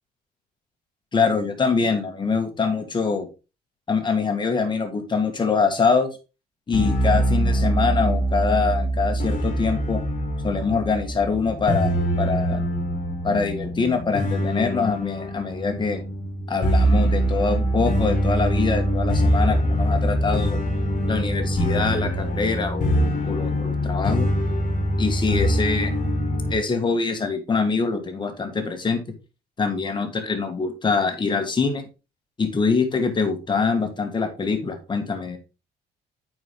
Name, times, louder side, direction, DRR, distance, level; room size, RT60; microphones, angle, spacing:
voice 1, 1.1-3.3 3.9-6.1 6.7-10.0 10.4-12.7 13.2-16.0 16.5-20.6 21.1-24.3 25.0-25.9 26.5-29.0 29.6-31.8 32.4-35.4, left 4 dB, 25° left, 6 dB, 1.8 m, -24 dB
sound 1, 6.7-26.5, equal, 50° left, 1.9 m, -23 dB
8.9 x 4.8 x 3.6 m, 0.30 s
cardioid pair, 110°, 17 cm